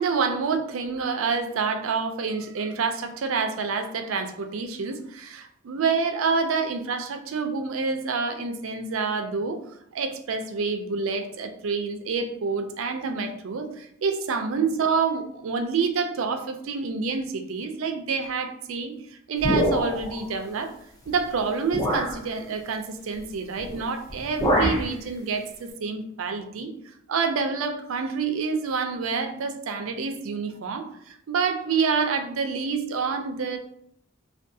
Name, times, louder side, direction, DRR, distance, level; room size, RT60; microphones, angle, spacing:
voice 1, 0.0-9.6 9.9-19.0 19.3-20.7 21.1-26.7 27.1-33.6, right 5 dB, 75° right, 6 dB, 0.4 m, -27 dB
sound 1, 19.4-20.2 21.1-21.2 21.7-22.2 23.6-23.8 24.1-24.9, equal, 20° left, 0.6 m, -24 dB
3.5 x 2.3 x 2.6 m, 0.69 s
head